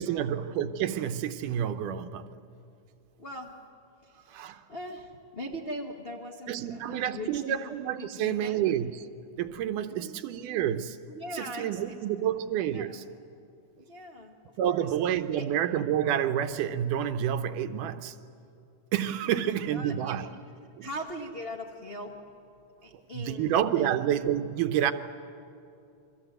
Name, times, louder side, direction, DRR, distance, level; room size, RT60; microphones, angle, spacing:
voice 1, 0.0-2.3 4.3-4.6 6.5-9.1 9.4-11.0 11.3-13.0 14.6-18.2 18.9-20.3 20.8-20.9 23.1-24.9, right 10 dB, 80° right, 2.3 m, -29 dB
voice 2, 3.2-3.5 4.0-7.6 8.0-8.6 9.9-10.2 11.1-12.2 12.7-13.0 13.8-14.9 15.3-15.4 19.4-20.2 20.8-22.2 22.8-23.9, equal, 70° left, 0.5 m, -41 dB
29.0 x 23.5 x 8.0 m
omnidirectional pair, 3.8 m